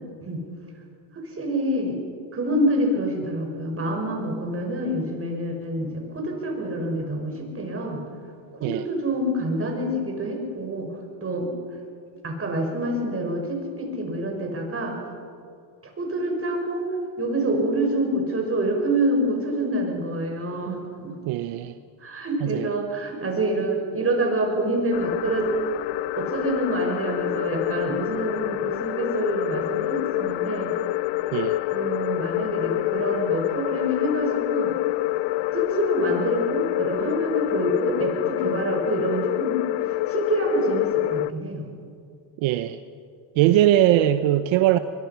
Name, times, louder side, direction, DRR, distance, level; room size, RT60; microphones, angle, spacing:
voice 1, 1.1-2.0 2.3-8.0 8.5-10.9 11.2-11.5 12.2-15.0 16.0-16.9 17.2-21.2 22.0-25.5 26.2-30.7 31.7-34.7 35.5-41.6, right 1 dB, 30° right, 2 dB, 5.8 m, -27 dB
voice 2, 21.3-21.8 22.4-22.7 31.3-31.6 42.4-42.8 43.4-44.8, right 13 dB, 75° right, 11 dB, 0.9 m, -20 dB
sound 1, 24.9-41.3, left 18 dB, 70° left, 0.6 m, -27 dB
23.0 x 22.5 x 5.9 m, 2.3 s
cardioid pair, 110°, 47 cm